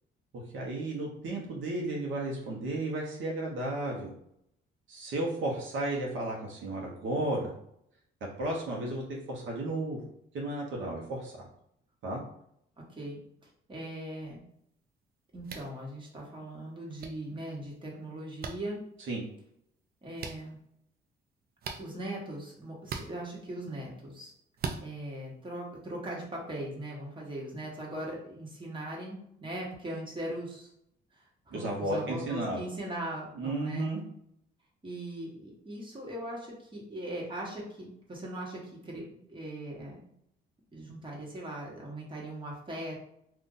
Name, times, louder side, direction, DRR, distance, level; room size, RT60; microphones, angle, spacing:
voice 1, 0.3-4.1 4.9-7.5 8.4-9.0 9.3-10.0 10.3-11.4 12.0-12.2 19.1-19.2 31.5-32.6 33.4-34.0, right 2 dB, 75° right, -2 dB, 0.9 m, -33 dB
voice 2, 12.8-14.4 15.3-18.8 20.0-20.6 21.8-24.3 24.8-30.7 31.2-33.9 34.8-39.0 39.3-40.0 40.7-43.0, right 1 dB, 25° right, -3 dB, 1.3 m, -40 dB
sound 1, 15.4-15.7 17.0-17.1 18.4-18.5 20.2-20.4 21.6-21.8 22.8-23.1 24.6-24.8, right 5 dB, 50° right, 0.5 m, -37 dB
2.6 x 2.4 x 3.8 m, 0.73 s
cardioid pair, 90°, 20 cm